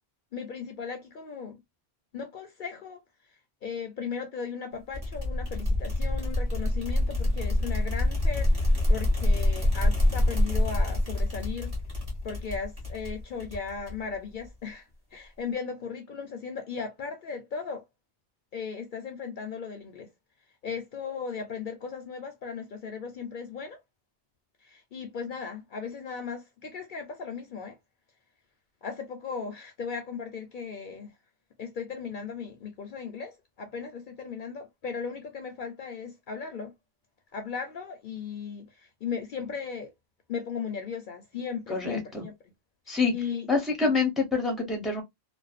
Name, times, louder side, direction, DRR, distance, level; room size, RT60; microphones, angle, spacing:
voice 1, 0.3-1.6 2.1-3.0 3.6-11.7 12.2-17.8 18.5-20.1 20.6-23.8 24.6-27.8 28.8-31.1 31.6-36.7 37.3-39.9 40.3-42.3 43.1-43.5, left 6 dB, 60° left, 0.6 m, -37 dB
sound 1, 4.9-14.2, left 1 dB, 35° right, 1.1 m, -26 dB
voice 2, 41.7-42.2 42.9-43.1 43.5-45.0, left 4 dB, ahead, 0.6 m, -26 dB
2.6 x 2.2 x 2.4 m
omnidirectional pair, 1.1 m